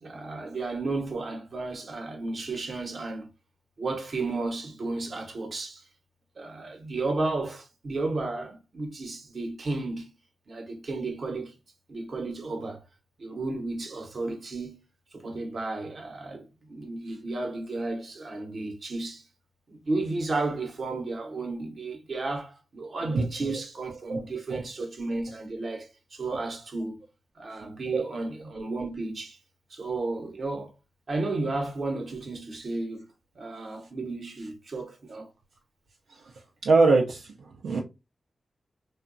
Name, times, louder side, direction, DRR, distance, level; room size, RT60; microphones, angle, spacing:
voice 1, 0.0-3.3 3.8-5.8 6.4-10.1 10.5-11.5 11.9-12.8 13.2-14.8 15.1-19.2 19.7-27.0 27.4-29.4 29.7-30.7 31.1-33.1 33.3-35.3, right 3 dB, 60° right, 0.8 m, -33 dB
voice 2, 24.1-24.6 26.3-26.4 27.9-28.0 36.1-36.2 36.6-37.8, right 3 dB, 90° right, 0.4 m, -24 dB
2.9 x 2.2 x 2.4 m
cardioid pair, 60°, 0 cm